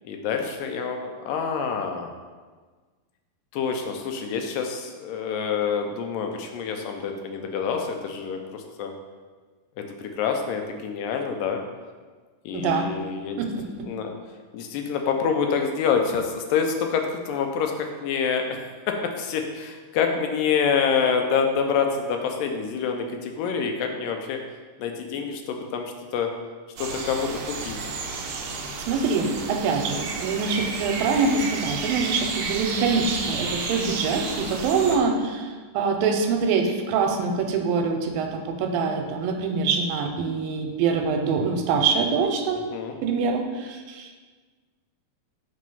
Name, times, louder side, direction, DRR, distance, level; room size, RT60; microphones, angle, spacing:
voice 1, 0.0-2.1 3.5-8.9 9.8-11.6 12.5-13.4 13.9-14.1 14.5-24.4 24.8-25.8 26.1-26.3 26.8-27.8 29.9-30.0 34.9-35.0 42.7-43.0, left 6 dB, 80° left, 4 dB, 2.3 m, -27 dB
voice 2, 12.5-12.9 13.4-13.9 28.8-42.6 43.0-44.1, right 5 dB, 85° right, 4 dB, 2.4 m, -24 dB
sound 1, 26.8-35.0, right 4 dB, 70° right, 2.0 m, -32 dB
7.4 x 3.8 x 5.4 m, 1.4 s
omnidirectional pair, 4.0 m